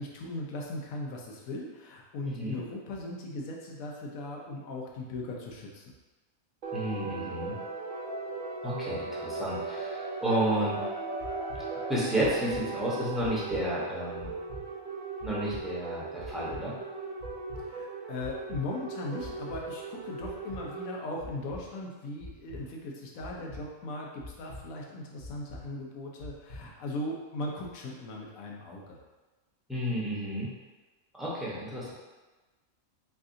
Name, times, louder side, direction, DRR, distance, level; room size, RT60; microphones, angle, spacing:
voice 1, 0.0-5.9 17.6-29.0, left 2 dB, 80° left, -1 dB, 1.1 m, -38 dB
voice 2, 2.2-2.6 6.7-7.6 8.6-10.8 11.9-14.3 15.2-16.7 29.7-30.5 31.1-31.9, right 1 dB, ahead, -8 dB, 0.6 m, -31 dB
sound 1, 6.6-21.0, right 3 dB, 65° right, 0.5 m, -37 dB
sound 2, 11.2-11.6 12.2-12.6 13.2-13.6 14.2-14.6 15.2-15.6 16.2-16.6 17.2-17.6 18.2-18.6 19.2-19.6 20.2-20.6 21.2-21.6 22.2-22.6 23.2-23.6 24.2-24.6 25.2-25.6 26.2-26.6, left 2 dB, 50° left, 0.9 m, -43 dB
3.6 x 3.3 x 2.6 m, 1.2 s
omnidirectional pair, 1.4 m